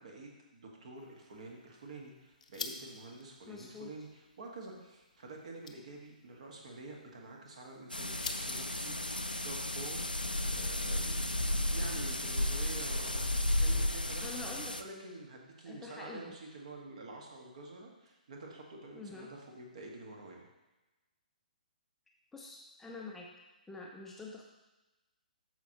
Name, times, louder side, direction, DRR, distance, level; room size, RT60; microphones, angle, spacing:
voice 1, 0.0-10.0 10.5-11.2 11.7-13.3 13.6-20.5, right 2 dB, 50° right, 0 dB, 1.7 m, -48 dB
sound 1, 0.9-11.3, left 5 dB, 55° left, 0.8 m, -50 dB
voice 2, 3.5-3.9 14.2-14.8 15.6-16.3 18.9-19.3 22.3-23.3 23.7-24.4, left 4 dB, 5° left, -2 dB, 0.6 m, -46 dB
sound 2, 7.9-14.8, left 1 dB, 90° left, 0.5 m, -33 dB
13.5 x 4.7 x 3.0 m, 1.1 s
figure-of-eight pair, 130°, 5 cm